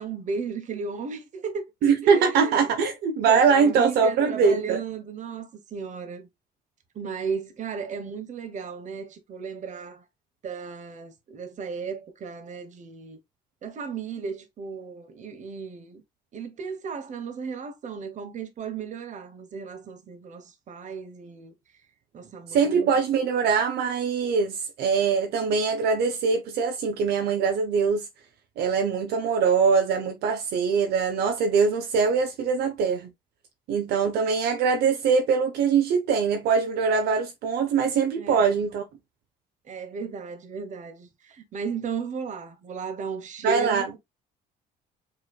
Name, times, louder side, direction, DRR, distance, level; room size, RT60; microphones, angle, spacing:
voice 1, 0.0-2.7 3.3-6.3 6.9-10.0 10.4-13.2 13.6-16.0 16.3-21.5 22.1-23.0 38.2-38.6 39.6-44.0, right 5 dB, 45° right, 1.1 m, -35 dB
voice 2, 1.8-4.8 22.5-28.1 28.6-33.1 33.7-38.8 43.4-43.9, right 5 dB, 75° right, 0.7 m, -23 dB
5.1 x 3.2 x 2.3 m
cardioid pair, 110°, 17 cm